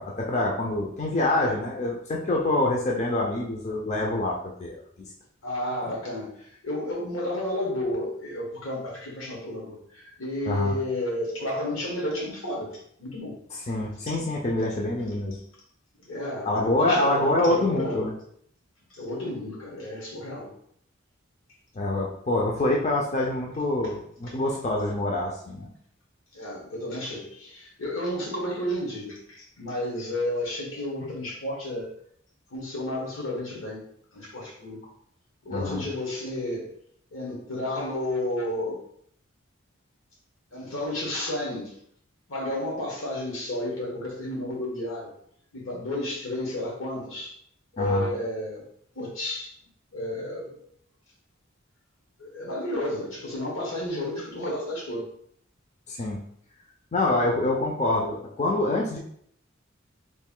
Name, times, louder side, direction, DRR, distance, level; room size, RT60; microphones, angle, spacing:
voice 1, 0.0-4.8 10.5-10.7 13.7-15.4 16.4-18.1 21.7-25.7 35.5-35.8 47.8-48.1 55.9-56.2 56.9-59.0, left 2 dB, 35° left, -1 dB, 0.5 m, -26 dB
voice 2, 5.4-13.4 13.8-14.2 16.1-18.1 18.9-20.5 26.3-31.9 32.5-33.8 34.1-34.8 35.4-36.7 37.1-38.8 40.5-41.8 42.3-45.1 45.5-47.4 47.7-48.6 48.9-49.5 49.9-50.6 52.2-55.1, left 1 dB, 80° left, -2 dB, 1.2 m, -32 dB
3.1 x 2.5 x 3.7 m, 0.66 s
head